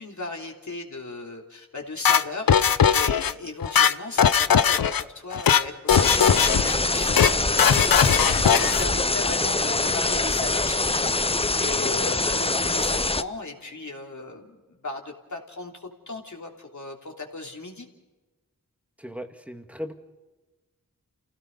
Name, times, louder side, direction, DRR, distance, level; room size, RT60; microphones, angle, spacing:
voice 1, 0.0-17.9, left 2 dB, 55° left, 1 dB, 3.2 m, -37 dB
sound 1, 2.0-3.3 3.6-5.0 5.3-5.6 5.9-6.7 7.0-7.3 7.6-8.9, left 8 dB, 80° left, 0.7 m, -19 dB
sound 2, 5.9-13.2, left 3 dB, 15° left, 0.6 m, -24 dB
voice 2, 19.0-19.9, equal, 5° right, 5 dB, 2.2 m, -36 dB
28.5 x 16.5 x 5.4 m, 1.2 s
cardioid pair, 50°, 34 cm